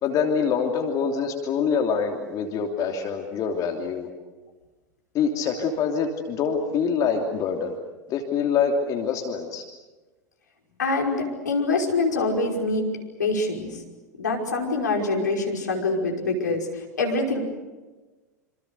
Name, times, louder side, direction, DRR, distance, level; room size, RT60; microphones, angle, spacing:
voice 1, 0.0-4.1 5.1-7.8 8.1-9.6, left 6 dB, 35° left, 3 dB, 3.0 m, -25 dB
voice 2, 10.8-12.9 13.2-13.8 14.2-17.4, left 3 dB, 75° left, 0 dB, 5.5 m, -25 dB
27.5 x 27.0 x 6.7 m, 1.2 s
figure-of-eight pair, 80°, 10 cm